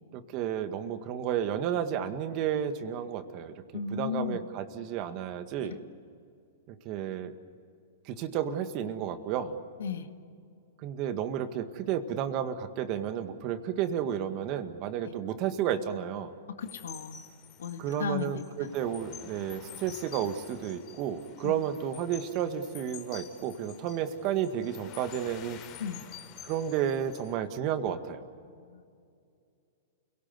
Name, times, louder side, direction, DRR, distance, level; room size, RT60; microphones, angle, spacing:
voice 1, 0.1-3.5 3.9-5.8 6.7-7.3 8.1-9.6 10.8-16.3 17.8-25.6 26.4-28.2, right 9 dB, 45° right, 9 dB, 1.8 m, -32 dB
voice 2, 3.7-4.4 5.6-5.8 9.8-10.1 16.6-17.2 17.6-18.7 21.4-21.6 25.8-26.0 28.6-28.8, left 6 dB, 80° left, 7 dB, 1.9 m, -35 dB
sound 1, 16.6-27.4, left 9 dB, 40° left, 3.6 m, -49 dB
29.5 x 17.5 x 8.1 m, 2.4 s
hypercardioid pair, 120°, 0 cm